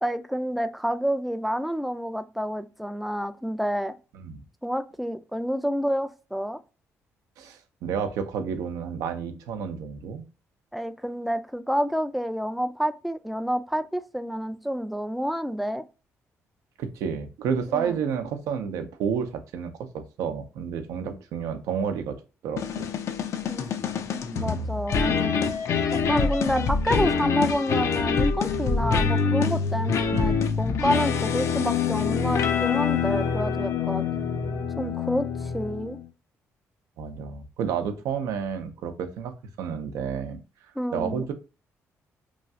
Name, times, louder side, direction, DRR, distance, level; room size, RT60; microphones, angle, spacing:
voice 1, 0.0-3.9 4.6-6.6 10.7-15.8 17.7-18.0 23.5-23.8 24.1-25.4 25.9-34.1 34.8-36.0 40.8-41.3, equal, ahead, 0.3 m, -29 dB
voice 2, 7.4-10.2 16.8-22.2 22.4-22.9 30.1-30.4 34.1-34.6 37.0-40.4 40.9-41.3, right 7 dB, 90° right, 0.5 m, -31 dB
sound 1, 22.6-36.1, left 6 dB, 60° left, 0.4 m, -25 dB
3.1 x 2.3 x 2.6 m
cardioid pair, 100°, 6 cm